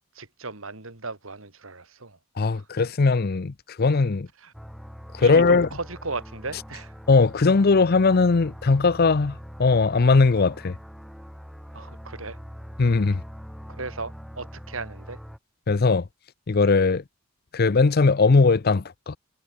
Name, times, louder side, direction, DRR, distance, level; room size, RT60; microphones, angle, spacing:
voice 1, 0.1-2.2 2.5-2.7 4.4-4.5 5.2-7.0 11.7-12.4 13.7-15.2, right 3 dB, 75° right, 3.1 m, -36 dB
voice 2, 2.4-4.3 5.1-5.7 7.1-10.8 12.8-13.2 15.7-16.1 16.5-17.0 17.5-19.2, left 4 dB, 45° left, 0.6 m, -19 dB
sound 1, 4.5-15.4, equal, ahead, 1.2 m, -42 dB
head